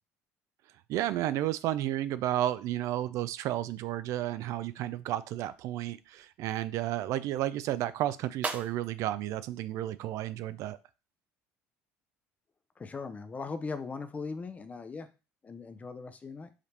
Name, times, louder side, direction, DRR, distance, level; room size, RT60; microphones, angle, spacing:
voice 1, 0.9-10.8, right 13 dB, 65° right, 14 dB, 0.3 m, -32 dB
sound 1, 5.8-10.7, right 3 dB, 25° right, 0.6 m, -45 dB
voice 2, 12.8-15.1 15.4-16.5, left 4 dB, 25° left, 10 dB, 0.6 m, -39 dB
4.8 x 2.9 x 3.3 m, 0.31 s
supercardioid pair, 95°, 6 cm